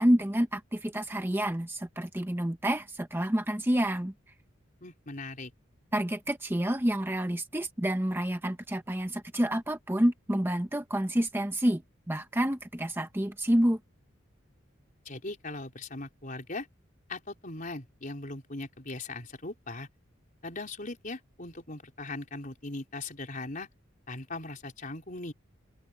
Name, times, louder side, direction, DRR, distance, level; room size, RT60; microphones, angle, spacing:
voice 1, 0.0-4.1 5.9-11.8 12.1-13.8, equal, 10° right, 0.9 m, -28 dB
voice 2, 4.8-5.5 15.0-16.7 17.1-19.9 20.4-23.7 24.1-25.3, left 2 dB, 40° left, 4.2 m, -39 dB
head